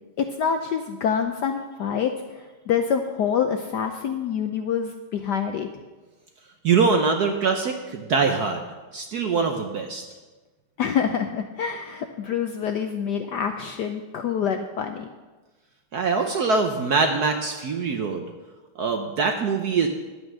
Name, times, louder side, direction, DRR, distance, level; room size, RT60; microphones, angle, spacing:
voice 1, 0.2-5.7 10.8-15.1, left 7 dB, 75° left, 6 dB, 1.0 m, -26 dB
voice 2, 6.6-8.6 8.9-10.0 15.9-18.2 18.8-19.9, right 4 dB, 65° right, 5 dB, 1.0 m, -23 dB
11.0 x 8.5 x 6.2 m, 1.2 s
omnidirectional pair, 2.4 m